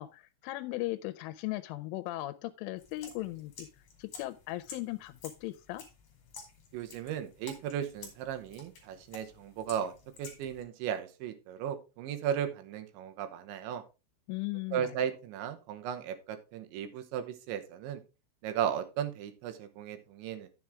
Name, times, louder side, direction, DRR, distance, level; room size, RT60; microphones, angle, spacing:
voice 1, 0.0-3.7 4.0-5.8 14.3-15.0, left 18 dB, 85° left, 10 dB, 3.1 m, -38 dB
sound 1, 2.8-10.6, left 5 dB, 45° left, 3.3 m, -52 dB
voice 2, 6.7-9.9 10.2-13.8 14.7-18.0 18.4-20.5, right 9 dB, 75° right, 8 dB, 3.2 m, -36 dB
10.5 x 7.5 x 3.5 m, 0.29 s
omnidirectional pair, 5.5 m